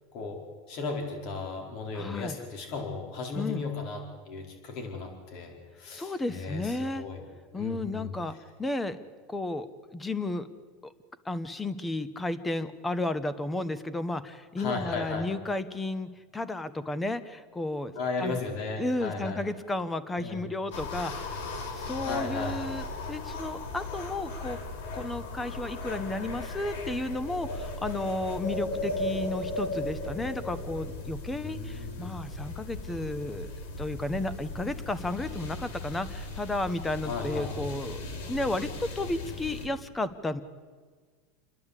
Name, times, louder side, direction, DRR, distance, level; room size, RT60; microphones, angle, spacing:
voice 1, 0.1-7.2 7.5-8.4 14.6-15.3 17.9-19.4 20.2-20.4 22.0-22.6 31.4-32.2 37.0-37.5, left 4 dB, 55° left, 2 dB, 4.7 m, -35 dB
voice 2, 1.9-2.4 3.3-3.6 5.9-7.1 7.5-8.3 8.6-9.0 9.3-10.5 10.8-10.9 11.2-18.3 18.8-21.4 21.7-24.6 24.9-33.5 33.8-38.0 38.3-40.4, left 2 dB, 10° left, 13 dB, 1.1 m, -33 dB
sound 1, 20.7-39.7, left 2 dB, 80° left, 3.1 m, -37 dB
29.0 x 10.5 x 8.3 m, 1.5 s
supercardioid pair, 130°, 0 cm